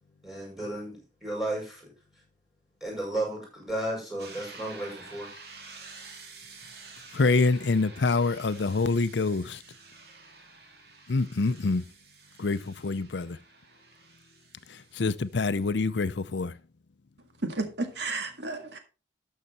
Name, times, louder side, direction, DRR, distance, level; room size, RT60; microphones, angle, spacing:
voice 1, 0.2-1.9 2.8-5.3, right 1 dB, ahead, 6.0 m, -33 dB
sound 1, 4.2-15.8, right 4 dB, 60° right, 2.6 m, -50 dB
voice 2, 7.1-9.6 11.1-11.9 12.4-13.4 14.7-16.5, left 3 dB, 80° left, 0.6 m, -26 dB
voice 3, 17.4-18.8, right 3 dB, 75° right, 1.9 m, -32 dB
12.5 x 6.6 x 4.2 m
head